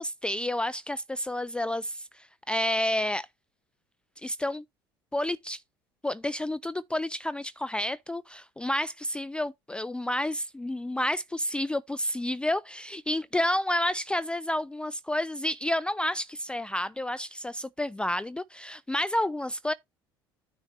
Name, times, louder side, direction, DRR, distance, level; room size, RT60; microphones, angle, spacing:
voice 1, 0.0-3.3 4.2-4.6 5.1-5.6 6.0-19.7, left 1 dB, 10° left, 0.4 m, -30 dB
9.8 x 4.0 x 4.7 m
figure-of-eight pair, 60°, 12 cm